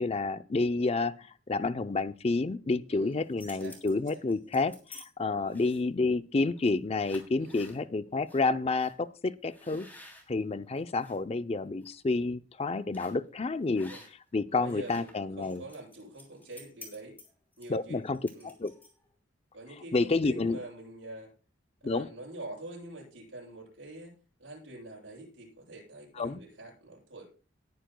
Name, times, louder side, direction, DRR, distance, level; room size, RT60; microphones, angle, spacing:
voice 1, 0.0-9.9 10.3-13.9 14.3-15.6 17.7-18.2 18.4-18.7 19.9-20.6 21.8-22.1 26.2-26.4, left 3 dB, 30° left, 13 dB, 0.5 m, -29 dB
voice 2, 2.9-3.3 3.6-3.8 4.1-4.2 5.4-5.7 7.4-7.7 9.6-9.9 13.7-14.0 14.5-17.2 17.6-18.0 18.3-18.5 19.5-21.3 21.8-27.3, right 2 dB, 80° right, -4 dB, 7.5 m, -46 dB
sound 1, 3.1-5.0 5.5-6.0 6.6-6.7 7.0-7.8 8.3-8.4 8.8-8.9 9.5-11.2 11.6-11.9 12.9-13.3 13.7-14.3 14.6-19.1, left 2 dB, 10° left, 3.0 m, -52 dB
19.5 x 9.5 x 2.2 m, 0.36 s
head